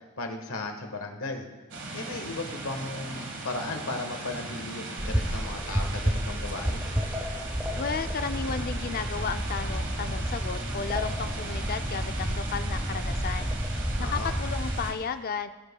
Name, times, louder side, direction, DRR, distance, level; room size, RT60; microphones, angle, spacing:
voice 1, 0.0-1.5 1.9-6.9 14.0-14.4, left 2 dB, 75° left, 4 dB, 1.3 m, -36 dB
sound 1, 1.7-14.9, right 2 dB, 55° right, 1.5 m, -38 dB
sound 2, 5.0-14.9, equal, 10° right, 0.6 m, -31 dB
voice 2, 7.8-13.6 14.0-15.5, left 6 dB, 45° left, 10 dB, 0.4 m, -33 dB
18.0 x 8.5 x 2.3 m, 1.3 s
head